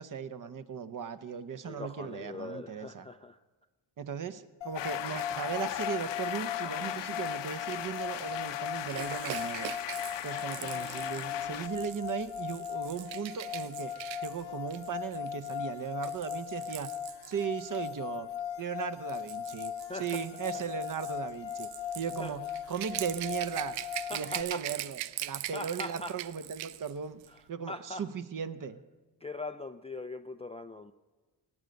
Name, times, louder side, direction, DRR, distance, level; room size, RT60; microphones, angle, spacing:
voice 1, 0.0-3.1 4.0-9.7 10.2-13.9 14.2-16.9 17.3-18.3 18.6-19.7 20.0-21.7 21.9-23.8 24.1-27.2 27.5-28.8, right 7 dB, 45° right, 11 dB, 0.8 m, -37 dB
voice 2, 1.6-3.4 19.9-20.2 21.8-22.3 24.1-24.6 25.2-26.2 27.3-27.4 27.7-28.0 29.2-30.9, left 2 dB, 15° left, 8 dB, 0.3 m, -41 dB
sound 1, 4.6-24.4, left 9 dB, 85° left, 1.1 m, -39 dB
sound 2, 4.7-11.7, left 12 dB, 65° left, 0.8 m, -38 dB
Rattle / Rattle (instrument), 8.9-17.9 18.8-26.9 27.2-27.4, right 14 dB, 80° right, 0.5 m, -42 dB
17.0 x 9.2 x 5.3 m, 1.3 s
supercardioid pair, 70°, 46 cm